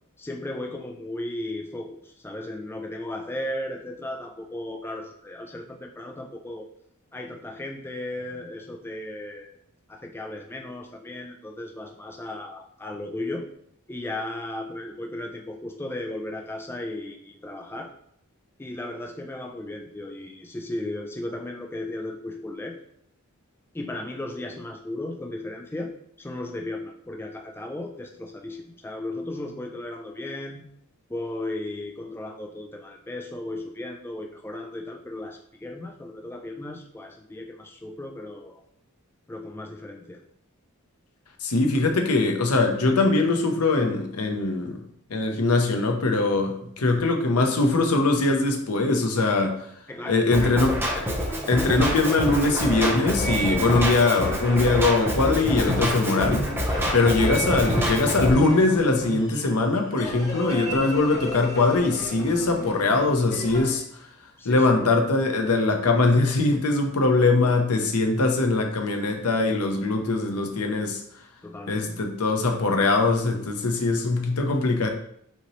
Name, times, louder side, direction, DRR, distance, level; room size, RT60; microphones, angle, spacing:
voice 1, 0.2-6.7 7.1-9.5 9.9-13.5 13.9-17.9 18.6-22.8 23.7-30.7 31.1-38.6 39.3-40.2 49.9-50.6 56.8-57.1 64.4-64.8 71.4-72.0, left 1 dB, 10° left, 2 dB, 0.3 m, -35 dB
voice 2, 41.4-44.8 45.1-49.6 50.1-51.1 51.5-56.5 56.9-63.8 64.4-71.0 71.7-74.9, left 3 dB, 85° left, 3 dB, 0.8 m, -22 dB
Drum kit, 50.3-58.3, equal, 10° right, 0.8 m, -26 dB
sound 1, 50.9-63.7, right 1 dB, 35° left, 1.4 m, -34 dB
5.7 x 2.9 x 3.1 m, 0.69 s
head